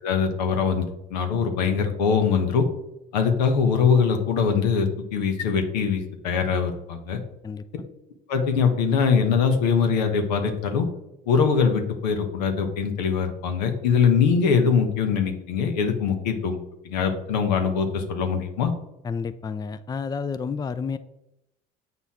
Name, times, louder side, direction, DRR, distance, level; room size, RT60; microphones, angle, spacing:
voice 1, 0.0-2.7 3.1-7.2 8.3-10.9 11.3-16.6 16.8-18.7, left 6 dB, 85° left, 5 dB, 1.2 m, -22 dB
voice 2, 19.0-21.0, left 5 dB, 20° left, 13 dB, 0.4 m, -30 dB
7.9 x 5.5 x 4.2 m, 0.89 s
hypercardioid pair, 70°, 21 cm